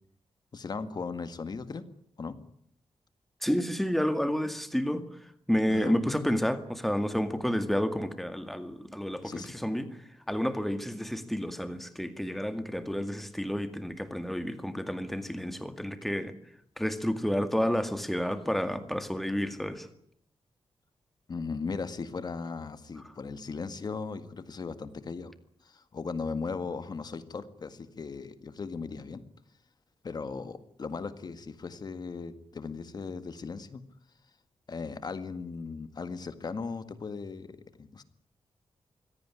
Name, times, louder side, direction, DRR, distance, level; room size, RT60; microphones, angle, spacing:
voice 1, 0.5-1.8 2.2-2.4 5.7-6.0 9.2-9.5 21.3-25.3 25.6-29.2 30.0-33.8 34.7-38.0, left 4 dB, 40° left, 11 dB, 1.9 m, -37 dB
voice 2, 3.4-5.0 5.5-10.0 10.3-16.3 16.8-19.9, equal, ahead, 9 dB, 2.1 m, -30 dB
24.5 x 17.0 x 9.9 m, 0.69 s
wide cardioid pair, 165°, 10 cm